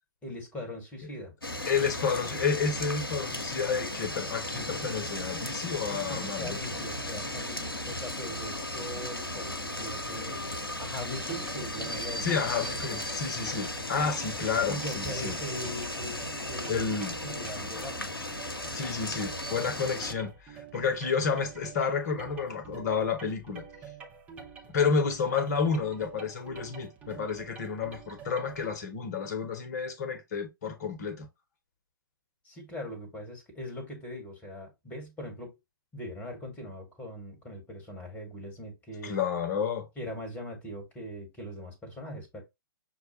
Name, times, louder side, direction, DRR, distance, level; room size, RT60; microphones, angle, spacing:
voice 1, 0.2-1.3 5.8-10.4 10.8-12.4 14.0-14.3 14.7-16.2 16.5-16.9 17.2-18.2 32.4-35.6 35.9-39.2 40.0-42.4, equal, 10° left, 1.5 m, -40 dB
sound 1, 1.4-20.1, left 1 dB, 80° left, 0.8 m, -36 dB
voice 2, 1.7-6.6 12.2-15.3 16.7-17.2 18.7-23.6 24.7-31.3 39.0-39.9, left 5 dB, 45° left, 1.0 m, -30 dB
sound 2, 11.3-28.7, right 6 dB, 10° right, 0.7 m, -48 dB
6.1 x 2.3 x 2.9 m
figure-of-eight pair, 120°, 12 cm